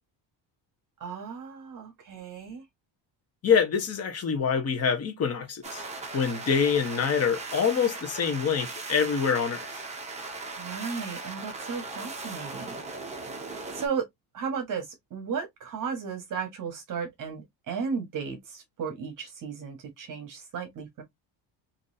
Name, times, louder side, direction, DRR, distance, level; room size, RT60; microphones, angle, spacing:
voice 1, 1.0-2.6 10.6-12.8 13.7-14.1 14.3-21.0, right 6 dB, 40° right, 1.3 m, -35 dB
voice 2, 3.4-5.8 6.1-9.7, left 6 dB, 30° left, 1.0 m, -25 dB
sound 1, 5.6-13.9, right 3 dB, 15° right, 0.6 m, -38 dB
3.9 x 2.8 x 2.6 m
cardioid pair, 165°, 46 cm